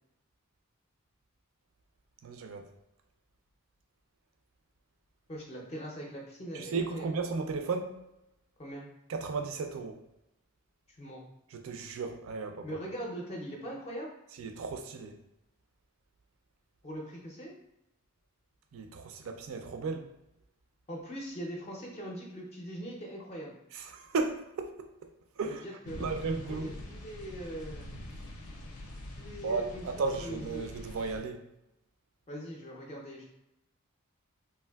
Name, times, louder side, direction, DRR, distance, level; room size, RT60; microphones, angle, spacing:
voice 1, 2.2-2.7 6.5-7.9 9.1-10.0 11.5-12.7 14.4-15.2 18.7-20.1 23.7-25.1 25.4-25.6 25.9-26.7 29.4-31.4, right 4 dB, 65° right, 5 dB, 0.4 m, -35 dB
voice 2, 5.3-7.1 8.6-8.9 10.9-11.2 12.6-14.1 16.8-17.5 20.9-23.6 25.4-27.9 29.2-29.9 30.1-30.5 32.3-33.3, equal, 30° left, -2 dB, 0.4 m, -41 dB
sound 1, 25.8-31.2, left 1 dB, 90° left, 0.6 m, -44 dB
3.4 x 2.5 x 2.2 m, 0.88 s
head